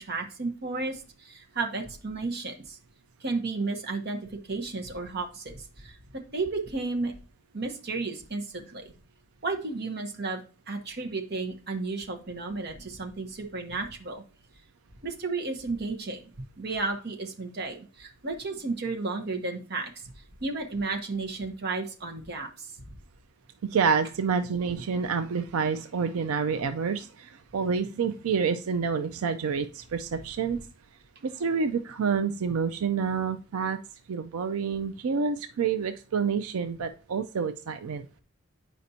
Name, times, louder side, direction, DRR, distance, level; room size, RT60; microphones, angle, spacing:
voice 1, 0.0-2.8 3.2-4.2 4.5-7.1 7.5-8.9 9.4-10.4 10.7-14.2 15.0-16.2 16.6-20.1 20.4-23.0, right 3 dB, 50° right, 2 dB, 1.0 m, -33 dB
voice 2, 23.6-30.7 31.2-33.8 34.1-38.2, right 5 dB, 85° right, 9 dB, 0.4 m, -28 dB
8.0 x 5.1 x 2.8 m, 0.38 s
head